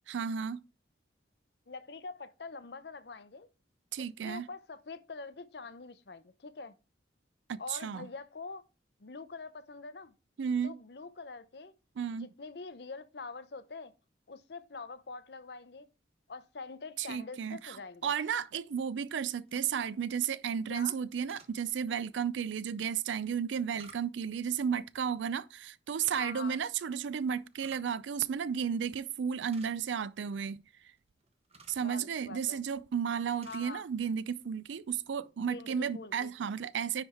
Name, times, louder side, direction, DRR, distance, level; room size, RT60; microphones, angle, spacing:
voice 1, 0.1-0.6 3.9-4.5 7.5-8.1 10.4-10.8 12.0-12.3 17.0-17.8 18.0-30.6 31.7-37.0, right 7 dB, 80° right, 0.4 m, -33 dB
voice 2, 1.7-3.5 4.0-6.7 7.6-8.6 9.0-10.1 10.6-11.7 12.2-13.9 14.3-15.9 16.3-18.1 20.7-20.9 26.1-26.6 31.8-32.6 33.4-33.8 35.4-36.3, left 4 dB, 60° left, 0.6 m, -45 dB
sound 1, 19.4-19.9 21.2-21.5 23.2-24.4 25.9-26.2 27.3-28.0 28.2-28.3 28.9-29.0 29.3-30.1 31.0-31.9 32.6-32.9 33.1-33.7 34.0-34.2, right 4 dB, 35° right, 1.0 m, -56 dB
9.9 x 3.4 x 4.2 m
head